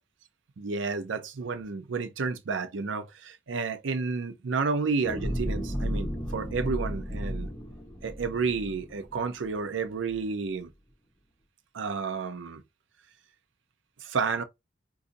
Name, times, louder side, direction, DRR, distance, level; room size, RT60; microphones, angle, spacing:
voice 1, 0.6-6.1 6.3-7.5 8.0-10.7 11.7-12.6 14.0-14.4, right 4 dB, 85° right, 0.5 m, -31 dB
sound 1, 5.0-9.5 10.0-10.1, equal, 15° left, 0.8 m, -34 dB
2.6 x 2.4 x 3.8 m
head